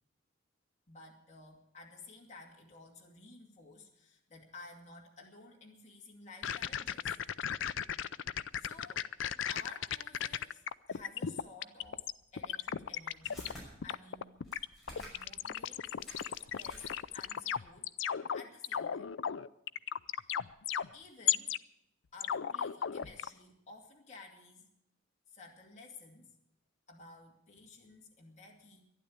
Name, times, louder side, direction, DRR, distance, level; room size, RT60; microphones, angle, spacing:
voice 1, 0.9-7.1 8.6-9.1 9.5-14.4 15.0-16.0 16.5-17.9 18.3-19.1 20.1-20.3 20.9-21.5 22.1-24.7 25.3-26.3 26.9-28.8, left 3 dB, 35° left, -1 dB, 2.4 m, -54 dB
sound 1, 6.4-12.1 12.4-13.5 13.8-21.6 22.2-23.3, left 9 dB, 65° left, 0.4 m, -35 dB
sound 2, 11.8-11.9 12.6-13.6 14.4-15.3 15.6-15.7 15.9-17.2, left 1 dB, ahead, 6.1 m, -51 dB
12.5 x 11.0 x 8.6 m, 0.81 s
head